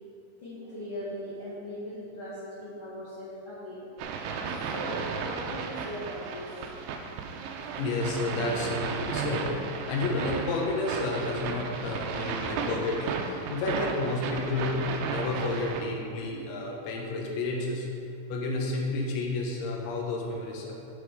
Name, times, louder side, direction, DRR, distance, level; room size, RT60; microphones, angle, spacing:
voice 1, 0.4-3.9 4.4-6.5, equal, 50° left, -10 dB, 1.8 m, -39 dB
sound 1, 4.0-15.8, right 5 dB, 85° right, 2.4 m, -34 dB
voice 2, 7.8-9.5 9.9-14.8 15.0-17.9 18.3-20.7, left 2 dB, 80° left, -1 dB, 3.4 m, -31 dB
10.5 x 5.8 x 4.9 m, 2.6 s
omnidirectional pair, 5.3 m